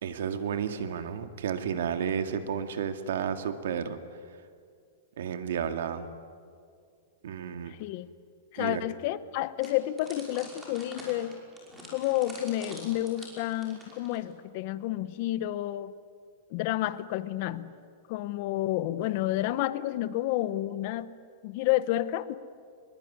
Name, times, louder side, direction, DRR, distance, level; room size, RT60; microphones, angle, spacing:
voice 1, 0.0-4.0 5.2-6.1 7.2-7.7 8.6-8.8, right 7 dB, 75° right, 8 dB, 2.2 m, -32 dB
voice 2, 7.7-8.1 8.5-11.4 11.9-15.9 16.5-17.7 18.1-21.1 21.4-22.3, left 14 dB, 40° left, 15 dB, 0.9 m, -30 dB
sound 1, 9.6-14.3, right 1 dB, 10° right, 5.7 m, -47 dB
24.0 x 22.0 x 9.7 m, 2.2 s
supercardioid pair, 165°, 0 cm